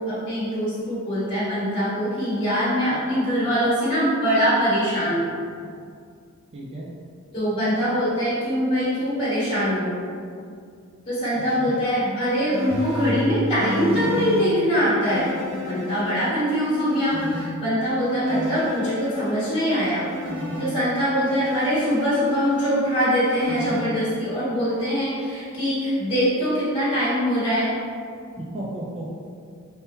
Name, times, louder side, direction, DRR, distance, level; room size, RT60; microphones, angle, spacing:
voice 1, 0.0-5.3 7.3-9.9 11.1-20.1 20.6-27.7, equal, 25° left, -12 dB, 1.4 m, -23 dB
voice 2, 6.5-6.9 11.6-11.7 18.3-18.5 28.4-29.2, right 1 dB, 25° right, -5 dB, 0.4 m, -34 dB
sound 1, 12.5-14.4 15.1-17.5 18.3-20.6 21.4-23.8, left 1 dB, 50° right, 0.8 m, -32 dB
3.6 x 2.8 x 4.2 m, 2.2 s
head